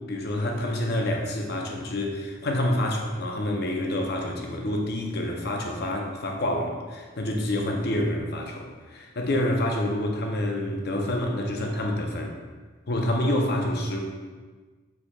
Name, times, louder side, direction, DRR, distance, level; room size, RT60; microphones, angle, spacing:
voice 1, 0.0-12.4 12.9-14.0, left 1 dB, 50° left, 1 dB, 0.5 m, -27 dB
4.5 x 4.0 x 2.3 m, 1.4 s
head